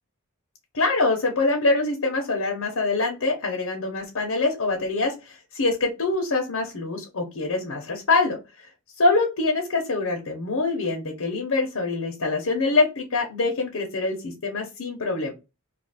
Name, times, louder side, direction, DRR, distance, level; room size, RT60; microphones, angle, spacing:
voice 1, 0.7-8.7 9.0-15.3, left 3 dB, 80° left, 1 dB, 0.9 m, -24 dB
2.7 x 2.6 x 4.1 m, 0.27 s
head